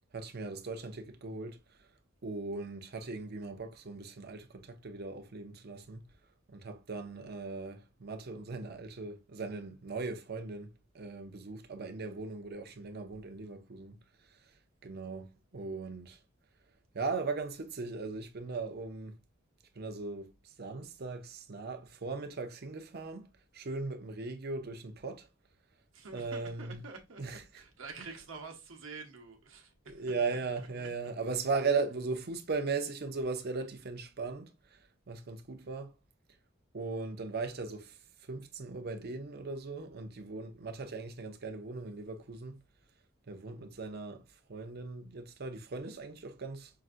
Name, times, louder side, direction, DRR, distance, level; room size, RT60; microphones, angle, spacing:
voice 1, 0.1-1.6 2.2-6.0 6.5-10.7 10.9-14.0 14.8-16.2 16.9-19.1 19.8-20.3 20.6-23.3 23.5-25.3 26.1-26.8 27.2-27.4 29.9-34.5 35.1-35.9 36.7-37.9 38.3-42.6 43.3-44.2 44.5-46.7, right 4 dB, 50° right, 0.6 m, -38 dB
voice 2, 25.9-27.2 27.5-30.0 30.6-30.9, right 4 dB, 70° right, 1.0 m, -48 dB
5.7 x 2.6 x 2.5 m
head